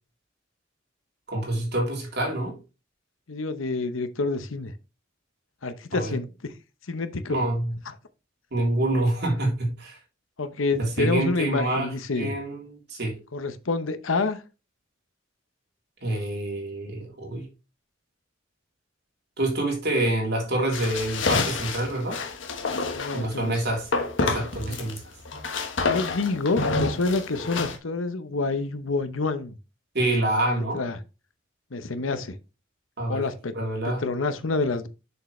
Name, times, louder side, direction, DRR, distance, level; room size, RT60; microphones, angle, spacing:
voice 1, 1.3-2.6 5.9-6.2 7.3-7.7 8.5-10.0 10.8-13.2 16.0-17.5 19.4-22.2 23.1-23.9 24.2-25.0 29.9-30.8 33.0-33.3 33.5-34.0, right 1 dB, 55° right, 3.3 m, -27 dB
voice 2, 3.3-4.7 5.6-6.5 6.9-7.4 10.4-12.3 13.3-14.4 22.9-23.6 24.7-24.8 25.8-29.5 30.5-31.0 31.7-32.4 33.1-33.5 33.8-34.9, left 3 dB, 80° left, 0.9 m, -28 dB
sound 1, 20.7-23.2 23.9-25.0 25.3-27.8, left 3 dB, 65° left, 1.3 m, -28 dB
6.8 x 6.8 x 3.2 m
head